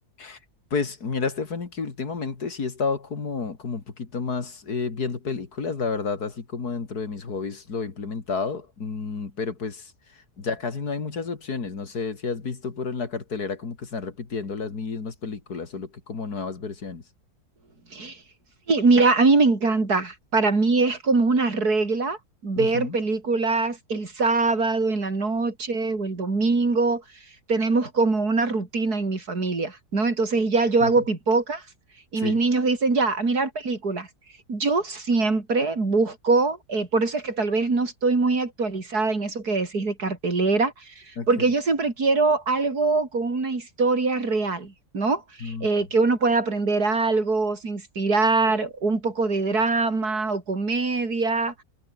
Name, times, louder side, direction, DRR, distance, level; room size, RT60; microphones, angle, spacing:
voice 1, 0.7-9.9 10.4-17.0 22.6-23.0 30.8-30.9 32.2-32.4 41.2-41.3 45.4-45.7, left 4 dB, 85° left, 3.2 m, -30 dB
voice 2, 18.7-22.2 22.4-27.0 27.5-31.6 32.1-34.1 34.5-40.9 41.3-51.5, right 3 dB, 90° right, 4.4 m, -23 dB
omnidirectional pair, 1.6 m